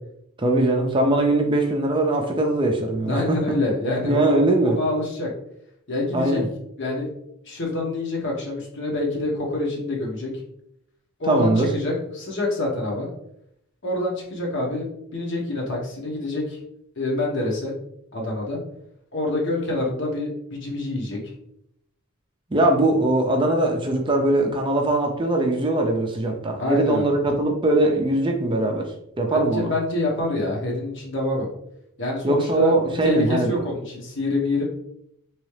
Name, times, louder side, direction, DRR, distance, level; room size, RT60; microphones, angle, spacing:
voice 1, 0.4-3.4 4.0-4.8 6.1-6.5 11.3-11.7 22.5-29.7 32.2-33.6, right 2 dB, 20° right, 2 dB, 0.4 m, -21 dB
voice 2, 3.0-5.3 5.9-6.4 6.8-7.1 7.4-10.3 11.2-13.1 13.8-14.9 15.1-16.6 17.0-17.7 18.1-18.6 19.1-21.3 26.6-27.1 29.3-31.5 32.0-32.7 33.0-34.6, left 2 dB, 55° left, -1 dB, 1.1 m, -26 dB
3.7 x 3.0 x 3.2 m, 0.76 s
head